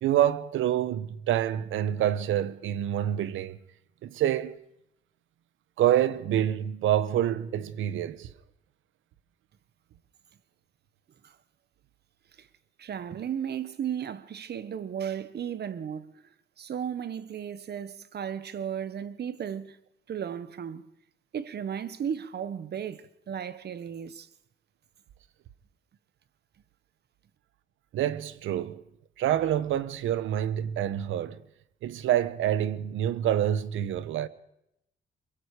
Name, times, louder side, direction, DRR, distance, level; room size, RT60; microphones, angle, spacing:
voice 1, 0.0-3.6 4.0-4.6 5.8-8.3 27.9-28.8 29.2-31.4 31.8-34.3, right 11 dB, 85° right, 1.3 m, -27 dB
voice 2, 12.8-16.1 16.6-19.8 20.1-20.9 21.3-24.3, right 8 dB, 55° right, 1.5 m, -35 dB
23.0 x 22.5 x 5.1 m
cardioid pair, 90°, 20 cm